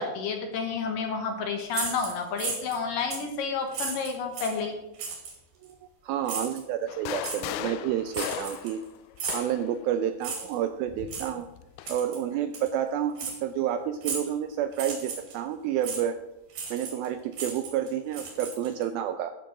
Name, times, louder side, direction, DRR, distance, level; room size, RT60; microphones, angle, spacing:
voice 1, 0.0-4.8, left 5 dB, 65° left, 4 dB, 2.5 m, -30 dB
sound 1, 1.7-2.8 3.1-3.3 3.7-4.6 5.0-5.4 6.3-6.6 7.2-7.4 8.1-8.8 9.2-9.5 10.2-10.6 11.1-11.3 11.9-12.2 12.5-12.7 13.2-13.4 14.0-14.3 14.7-15.3 15.8-16.0 16.5-17.1 17.3-18.8, right 5 dB, 65° right, 4.7 m, -35 dB
voice 2, 6.0-8.8 9.3-11.5 11.9-16.2 16.7-19.4, right 10 dB, 80° right, 9 dB, 2.2 m, -30 dB
sound 2, 6.9-9.8 10.9-12.0, left 13 dB, 80° left, 2.4 m, -37 dB
13.0 x 6.9 x 6.0 m, 0.94 s
omnidirectional pair, 4.8 m